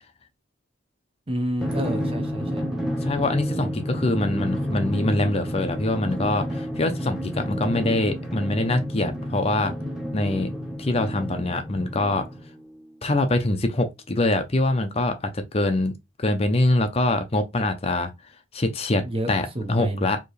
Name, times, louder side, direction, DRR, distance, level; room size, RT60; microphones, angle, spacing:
voice 1, 1.3-2.7 19.0-19.3 19.5-20.1, right 1 dB, 30° right, 1.0 m, -29 dB
Drum, 1.6-12.6, equal, ahead, 1.0 m, -30 dB
voice 2, 3.0-9.7 10.1-12.3 13.0-18.1 18.5-20.2, left 2 dB, 30° left, 0.6 m, -24 dB
4.6 x 3.0 x 3.2 m
head